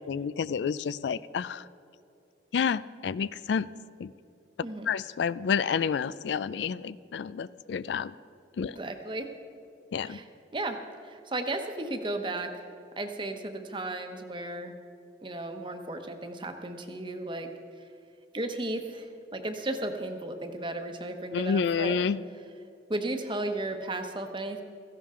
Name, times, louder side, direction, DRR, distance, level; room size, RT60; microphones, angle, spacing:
voice 1, 0.1-1.6 2.5-3.7 4.0-4.1 4.9-8.1 8.6-8.7 9.9-10.2 21.3-22.2, left 6 dB, 80° left, 17 dB, 0.3 m, -29 dB
voice 2, 8.6-9.3 10.0-10.3 10.5-12.5 13.0-14.8 15.2-17.5 18.3-22.0 22.9-24.6, right 2 dB, 30° right, 6 dB, 1.0 m, -34 dB
17.0 x 15.0 x 3.8 m, 2.7 s
head